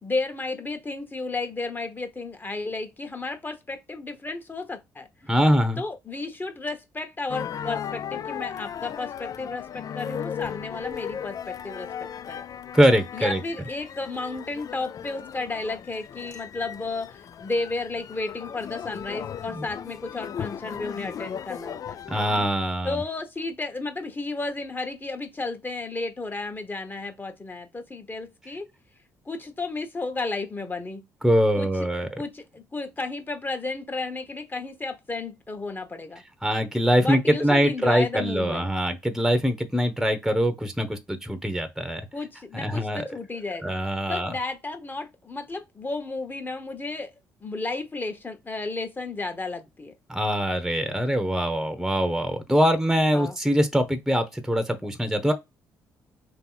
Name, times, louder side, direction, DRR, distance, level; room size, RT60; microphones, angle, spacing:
voice 1, 0.0-5.1 5.8-12.4 13.1-22.0 22.8-28.7 29.2-31.0 31.6-31.7 32.0-36.2 37.0-38.7 42.1-43.7 44.1-47.1 47.4-49.9 53.1-53.4, left 3 dB, 25° left, 1.2 m, -33 dB
voice 2, 5.3-5.8 12.7-13.4 19.5-19.6 22.1-23.0 31.2-32.2 36.4-42.0 42.5-43.1 43.6-44.3 50.1-55.3, equal, 5° right, 0.9 m, -23 dB
sound 1, 7.3-22.5, left 8 dB, 50° left, 0.3 m, -36 dB
3.6 x 3.0 x 3.8 m
hypercardioid pair, 55°, 8 cm